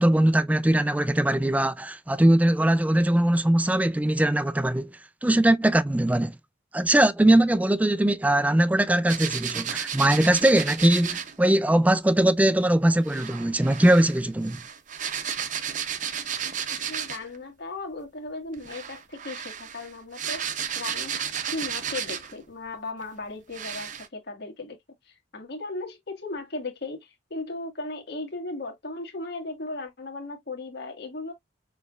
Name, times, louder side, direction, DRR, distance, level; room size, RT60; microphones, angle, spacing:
voice 1, 0.0-6.4 6.7-14.6, right 1 dB, 10° right, 0.3 m, -21 dB
sound 1, 9.1-11.4 13.0-17.4 18.5-22.4 23.0-23.1 23.5-24.1, right 8 dB, 40° right, 0.7 m, -33 dB
voice 2, 16.7-20.5 20.7-31.3, left 2 dB, 55° left, 1.7 m, -37 dB
6.2 x 3.3 x 2.4 m
head